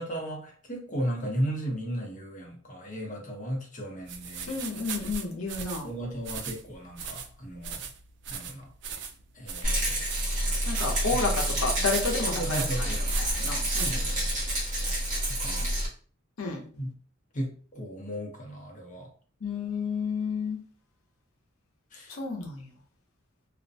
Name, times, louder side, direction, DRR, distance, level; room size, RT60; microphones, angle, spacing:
voice 1, 0.0-4.6 5.8-7.9 8.3-8.7 9.3-10.0 12.2-13.2 13.8-14.4 15.4-15.7 16.8-16.9 17.3-19.1 21.9-22.1, right 1 dB, 40° left, 0 dB, 0.8 m, -35 dB
sound 1, 4.1-14.5, right 5 dB, 55° right, 0.3 m, -38 dB
voice 2, 4.5-5.9 10.7-12.9 13.2-14.0 16.4-16.7 19.4-20.6 22.1-22.7, left 4 dB, 80° left, 0 dB, 0.7 m, -31 dB
Rattle, 9.6-15.9, right 1 dB, 40° right, 1.1 m, -28 dB
2.4 x 2.1 x 2.6 m, 0.42 s
head